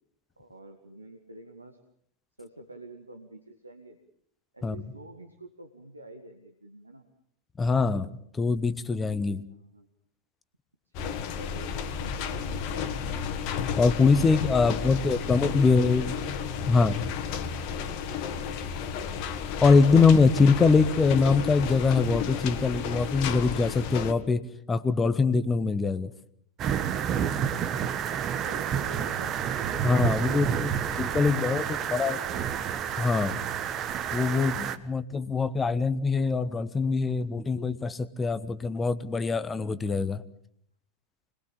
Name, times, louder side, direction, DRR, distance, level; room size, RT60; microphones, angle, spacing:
voice 1, 0.4-1.8 2.4-4.0 4.5-7.0 9.5-9.9 11.0-12.9 14.6-15.1 15.5-16.8 28.3-29.8 30.1-30.7 31.2-33.0, right 1 dB, 80° right, 5 dB, 2.0 m, -47 dB
voice 2, 7.6-9.4 13.8-16.0 16.7-17.0 19.6-24.4 24.7-26.1 29.8-31.6 31.9-32.2 33.0-33.4 34.1-40.2, left 4 dB, 15° left, 14 dB, 1.2 m, -23 dB
sound 1, 10.9-24.1, left 7 dB, 45° left, 2.0 m, -32 dB
sound 2, 26.6-34.8, right 8 dB, 30° right, 1.5 m, -29 dB
26.0 x 21.5 x 7.3 m, 0.69 s
figure-of-eight pair, 90°, 0 cm